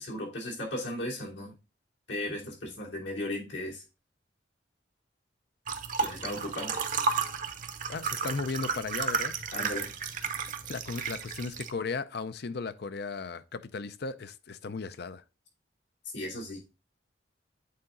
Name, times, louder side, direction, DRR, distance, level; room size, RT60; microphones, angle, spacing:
voice 1, 0.0-1.5 2.1-3.8 6.0-6.8 9.5-9.9 16.1-16.6, left 1 dB, 85° left, 3.0 m, -36 dB
sound 1, 5.7-11.7, right 5 dB, 45° right, 0.8 m, -33 dB
voice 2, 7.9-9.3 10.7-15.2, left 4 dB, 60° left, 0.5 m, -36 dB
8.5 x 4.0 x 3.7 m
head